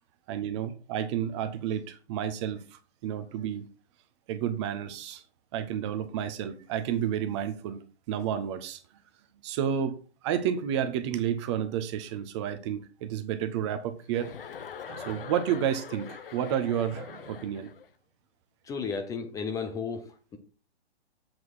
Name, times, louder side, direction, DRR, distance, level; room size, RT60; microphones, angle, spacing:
voice 1, 0.3-2.6 3.0-3.7 4.3-5.2 5.5-8.8 9.4-10.0 10.2-14.4 14.9-17.7, right 9 dB, 25° right, 0.7 m, -31 dB
Chuckle chortle, 14.1-17.9, left 7 dB, 55° left, 1.0 m, -43 dB
voice 2, 18.6-20.4, left 5 dB, 10° left, 0.6 m, -34 dB
7.7 x 4.6 x 6.0 m
figure-of-eight pair, 115°, 33 cm